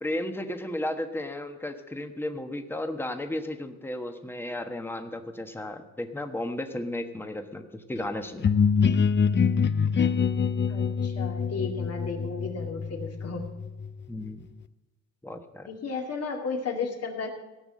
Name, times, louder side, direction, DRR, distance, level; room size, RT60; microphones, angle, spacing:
voice 1, 0.0-8.5 14.1-14.4 15.2-15.7, left 1 dB, 5° left, 6 dB, 1.2 m, -34 dB
sound 1, 8.4-14.1, left 6 dB, 35° left, 0.6 m, -25 dB
voice 2, 10.7-13.4 15.7-17.3, left 4 dB, 55° left, 3 dB, 2.3 m, -34 dB
16.5 x 6.0 x 8.5 m, 1.1 s
cardioid pair, 90°, 30 cm